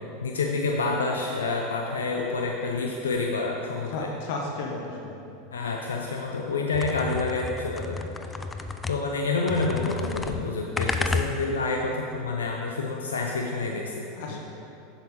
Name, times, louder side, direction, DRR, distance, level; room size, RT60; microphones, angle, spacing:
voice 1, 0.2-4.1 5.5-8.1 8.9-14.4, left 3 dB, 85° left, 0 dB, 0.5 m, -28 dB
voice 2, 3.9-5.2 14.1-14.4, left 3 dB, 65° left, 0 dB, 0.9 m, -33 dB
sound 1, 6.7-9.2 9.5-11.7, left 3 dB, 15° left, 0.5 m, -32 dB
7.9 x 6.7 x 3.7 m, 2.8 s
hypercardioid pair, 95°, 0 cm